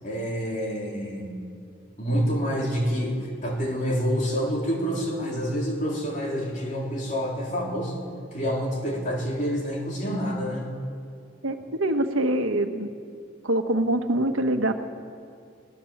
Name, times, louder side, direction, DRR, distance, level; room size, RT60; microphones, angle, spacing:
voice 1, 0.0-1.4 2.0-8.0 8.3-10.7, equal, 40° left, -1 dB, 3.7 m, -27 dB
voice 2, 11.4-12.9 13.4-14.7, right 1 dB, 85° right, 6 dB, 1.5 m, -24 dB
23.5 x 19.0 x 7.4 m, 2.3 s
head